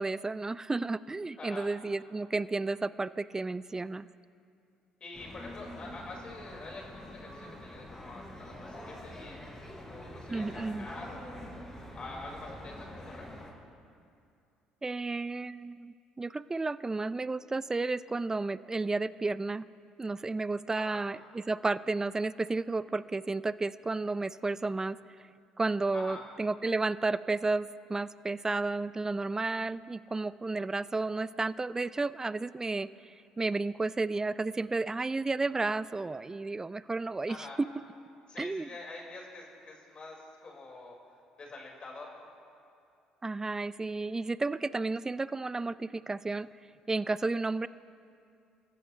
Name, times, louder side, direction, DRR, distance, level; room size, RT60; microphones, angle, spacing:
voice 1, 0.0-4.1 10.3-10.9 14.8-19.7 20.0-25.0 25.6-37.7 38.4-38.7 43.2-46.5 46.9-47.7, right 3 dB, 20° right, 17 dB, 0.5 m, -32 dB
voice 2, 1.4-1.7 5.0-11.3 11.9-13.3 20.7-21.0 25.9-26.2 37.3-37.6 38.3-40.9 41.4-42.3, left 2 dB, 40° left, -1 dB, 5.1 m, -46 dB
sound 1, 5.1-13.5, left 1 dB, 20° left, 5.2 m, -45 dB
29.5 x 14.5 x 3.3 m, 2.5 s
hypercardioid pair, 55°, 3 cm